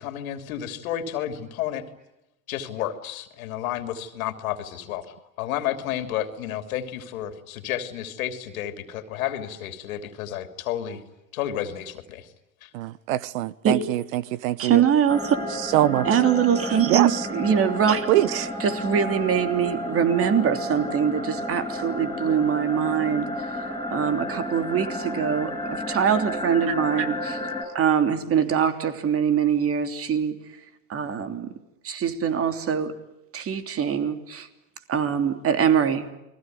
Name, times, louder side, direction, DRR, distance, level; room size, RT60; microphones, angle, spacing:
voice 1, 0.0-1.8 2.5-11.0 11.3-12.3 12.6-12.7, left 11 dB, 70° left, 3.1 m, -31 dB
voice 2, 12.7-14.8 15.6-16.1 16.9-17.3 18.1-18.5, right 14 dB, 65° right, 1.1 m, -23 dB
voice 3, 14.6-15.4 16.0-18.1 18.3-23.5 23.9-27.4 27.7-30.4 30.9-31.5 31.8-32.9 33.3-34.5 34.9-36.1, right 8 dB, 30° right, 3.2 m, -23 dB
sound 1, 15.1-27.7, left 1 dB, 10° left, 6.2 m, -32 dB
29.5 x 21.5 x 9.4 m
hypercardioid pair, 110°, 43 cm